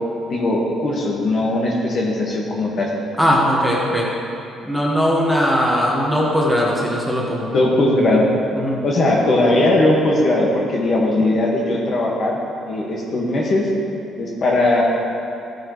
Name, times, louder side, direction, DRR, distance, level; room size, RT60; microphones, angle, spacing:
voice 1, 0.3-2.9 7.5-8.2 8.8-12.4 12.7-13.6 14.2-14.8, left 2 dB, 40° left, -2 dB, 1.6 m, -19 dB
voice 2, 3.2-4.1 4.6-7.6 8.5-8.8, equal, ahead, -4 dB, 1.4 m, -19 dB
14.5 x 9.0 x 3.1 m, 2.8 s
cardioid pair, 145°, 0 cm